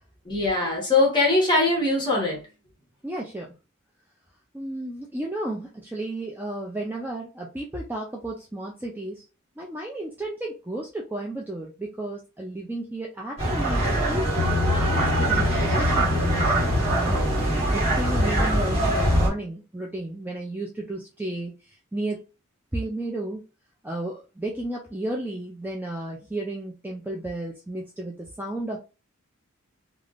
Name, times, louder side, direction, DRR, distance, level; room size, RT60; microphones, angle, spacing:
voice 1, 0.2-2.4, left 2 dB, 20° left, 1.2 m, -21 dB
voice 2, 3.0-3.5 4.5-9.2 9.6-21.5 21.9-22.2 22.7-23.4 23.8-28.8, right 1 dB, 10° right, 0.4 m, -33 dB
sound 1, 13.4-19.3, right 1 dB, 30° right, 1.3 m, -23 dB
Bass guitar, 14.4-17.8, left 7 dB, 70° left, 0.3 m, -30 dB
3.4 x 2.4 x 2.4 m
head